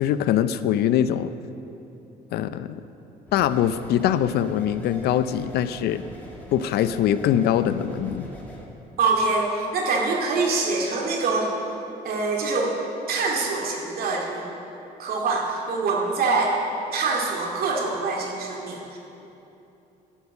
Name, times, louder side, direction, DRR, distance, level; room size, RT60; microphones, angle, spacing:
voice 1, 0.0-1.3 2.3-2.8 3.3-6.0 6.5-8.3, left 10 dB, 70° left, 13 dB, 0.5 m, -23 dB
sound 1, 3.3-8.7, equal, 10° left, 2.1 m, -43 dB
voice 2, 9.0-11.5 12.0-12.8 13.1-14.6 15.0-16.6 16.9-19.0, right 3 dB, 65° right, -1 dB, 2.3 m, -24 dB
11.0 x 7.0 x 8.3 m, 2.9 s
cardioid pair, 110°, 17 cm